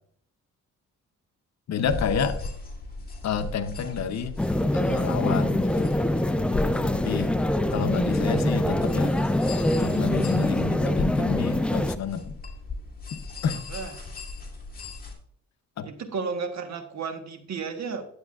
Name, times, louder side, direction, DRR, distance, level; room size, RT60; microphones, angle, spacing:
voice 1, 1.7-2.4 3.2-4.4 4.7-6.0 6.8-7.3 7.7-9.2 9.8-12.4 13.1-13.6 15.8-15.9, left 6 dB, 60° left, 10 dB, 0.8 m, -30 dB
sound 1, 1.8-15.1, left 3 dB, 30° left, 1.9 m, -37 dB
sound 2, 4.4-12.0, left 1 dB, 5° left, 0.3 m, -24 dB
voice 2, 13.7-14.0 15.8-18.1, right 5 dB, 60° right, 7 dB, 1.3 m, -33 dB
10.5 x 8.1 x 2.4 m, 0.65 s
cardioid pair, 105°, 31 cm